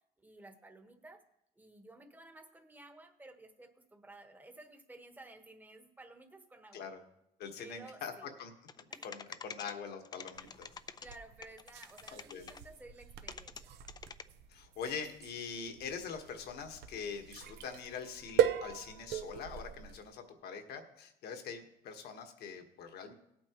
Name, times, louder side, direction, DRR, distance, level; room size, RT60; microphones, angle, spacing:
voice 1, 0.2-1.2 1.6-6.9 7.6-8.3 8.9-9.1 11.0-13.7, right 2 dB, 10° right, 5 dB, 1.2 m, -54 dB
voice 2, 7.4-8.5 9.0-10.7 12.1-12.5 14.5-23.1, left 6 dB, 70° left, 5 dB, 1.5 m, -43 dB
sound 1, 8.7-9.7 10.0-11.2 11.4-12.6 13.3-13.6 13.9-14.2, left 5 dB, 25° left, 0.4 m, -46 dB
sound 2, 10.3-20.1, right 10 dB, 75° right, 0.7 m, -38 dB
17.0 x 8.6 x 3.0 m, 0.81 s
cardioid pair, 110°, 17 cm